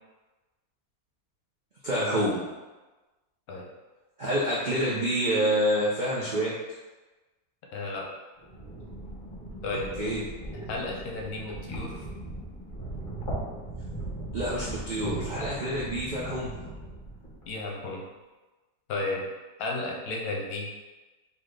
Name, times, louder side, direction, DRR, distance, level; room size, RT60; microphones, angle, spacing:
voice 1, 1.8-2.4 4.2-6.5 10.0-10.2 14.3-16.5, equal, 65° right, -6 dB, 0.4 m, -27 dB
voice 2, 7.7-8.1 9.6-10.1 10.5-12.0 17.5-18.0 18.9-19.3 19.6-20.7, left 2 dB, 75° left, 0 dB, 1.2 m, -33 dB
sound 1, 8.4-17.6, right 2 dB, 35° left, 1.2 m, -38 dB
4.0 x 2.8 x 3.2 m, 1.2 s
omnidirectional pair, 1.6 m